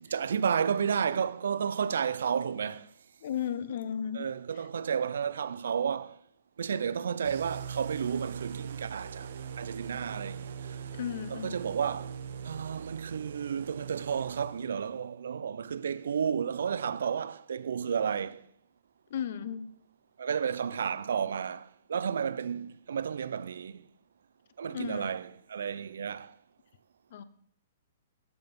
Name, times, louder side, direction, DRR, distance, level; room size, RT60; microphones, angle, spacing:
voice 1, 0.1-2.9 4.1-6.2 6.6-10.8 11.3-12.2 12.4-18.4 20.2-23.9 24.6-26.4, right 7 dB, 85° right, 0.6 m, -32 dB
voice 2, 3.2-4.3 10.9-11.7 19.1-19.7 24.7-25.1 27.1-27.2, left 9 dB, 50° left, 0.9 m, -35 dB
sound 1, 7.2-14.9, right 7 dB, 60° right, 1.0 m, -41 dB
14.5 x 8.9 x 5.4 m
hypercardioid pair, 175°, 0 cm